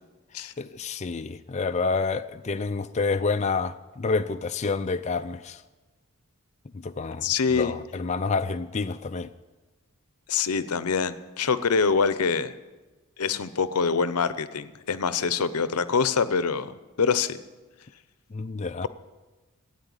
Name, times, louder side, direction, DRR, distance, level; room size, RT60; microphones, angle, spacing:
voice 1, 0.6-5.6 6.8-7.3 7.5-9.3 18.3-18.9, left 4 dB, 30° left, 0.4 m, -28 dB
voice 2, 7.2-7.8 10.3-12.5 13.2-17.4 18.8-18.9, left 5 dB, 90° left, 0.7 m, -25 dB
13.0 x 8.9 x 9.8 m
head